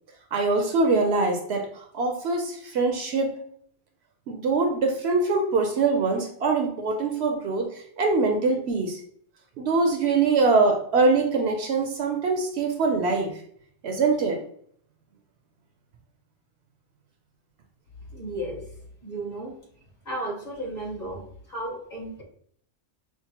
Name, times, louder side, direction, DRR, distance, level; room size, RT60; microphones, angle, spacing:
voice 1, 0.3-3.4 4.3-9.0 9.6-13.3 13.8-14.4, right 3 dB, 65° right, 3 dB, 0.8 m, -23 dB
voice 2, 18.1-18.6 19.0-19.5 20.0-22.2, right 1 dB, 35° left, -4 dB, 1.5 m, -34 dB
5.7 x 2.1 x 2.8 m, 0.63 s
omnidirectional pair, 1.2 m